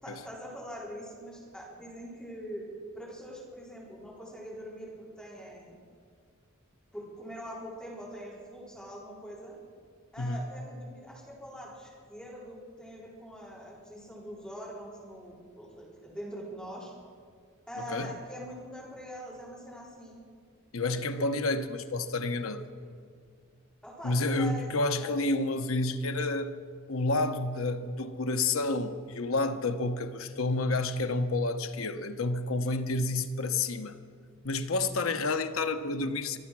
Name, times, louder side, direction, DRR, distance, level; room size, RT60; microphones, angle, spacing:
voice 1, 0.0-2.7 2.9-5.8 6.9-9.6 10.1-16.9 17.7-20.2 20.9-21.3 23.8-25.3, equal, 5° left, 4.1 m, -43 dB
voice 2, 20.7-22.6 24.0-26.5 26.9-34.0 34.4-36.4, left 2 dB, 80° left, 0.9 m, -29 dB
25.0 x 8.4 x 6.1 m
head